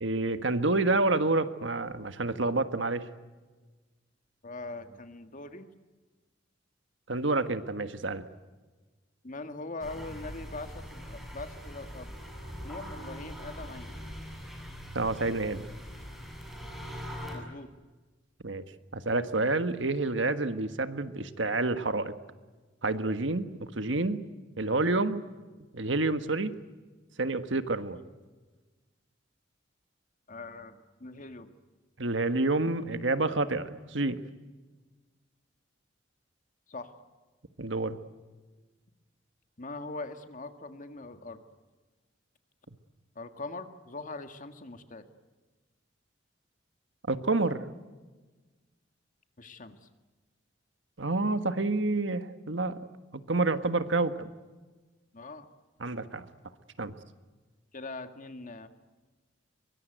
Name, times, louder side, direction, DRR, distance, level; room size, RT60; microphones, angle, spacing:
voice 1, 0.0-3.0 7.1-8.2 14.9-15.6 18.4-18.6 18.9-22.1 22.8-23.5 23.8-24.2 24.6-25.2 25.7-26.5 27.2-28.0 32.0-34.2 37.6-38.0 47.1-47.6 51.0-52.8 53.1-54.3 55.8-56.2 56.8-56.9, right 2 dB, 75° right, 10 dB, 1.5 m, -28 dB
voice 2, 4.4-5.7 9.2-12.1 12.6-13.9 17.3-17.7 30.3-31.5 36.7-36.9 39.6-41.4 43.2-45.0 49.4-49.8 55.1-55.5 57.7-58.7, left 3 dB, 45° left, 8 dB, 1.9 m, -42 dB
sound 1, 9.8-17.4, equal, ahead, 7.4 m, -42 dB
24.5 x 23.5 x 9.3 m, 1.3 s
head